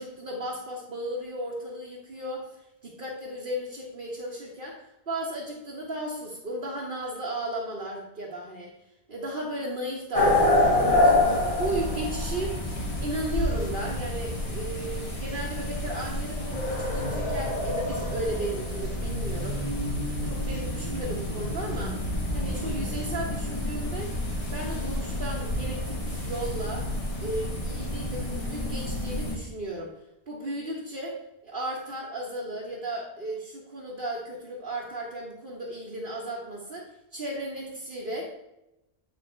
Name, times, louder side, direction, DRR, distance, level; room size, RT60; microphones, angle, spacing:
voice 1, 0.0-2.5 2.8-8.7 9.1-10.7 11.0-12.6 13.0-19.6 20.2-22.0 22.3-24.1 24.5-26.9 27.2-29.9 30.3-38.3, right 1 dB, 55° right, -4 dB, 1.2 m, -35 dB
sound 1, 10.1-29.4, left 1 dB, 30° left, 1.3 m, -28 dB
8.6 x 3.8 x 4.3 m, 0.90 s
omnidirectional pair, 1.2 m